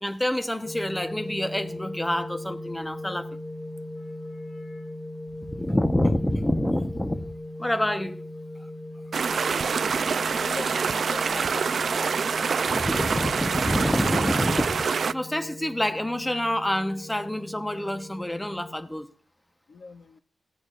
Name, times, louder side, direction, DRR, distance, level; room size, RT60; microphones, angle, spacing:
voice 1, 0.0-3.3 5.5-7.3 7.6-8.2 12.7-14.9 15.1-19.1, left 1 dB, 10° left, 1.0 m, -27 dB
sound 1, 0.7-18.7, left 1 dB, 25° left, 2.2 m, -39 dB
voice 2, 4.0-4.9 10.3-11.7 12.0-13.3 19.7-20.2, left 4 dB, 70° left, 0.7 m, -43 dB
sound 2, 9.1-15.1, right 5 dB, 60° right, 0.4 m, -26 dB
16.5 x 8.9 x 2.5 m
wide cardioid pair, 100°, 0 cm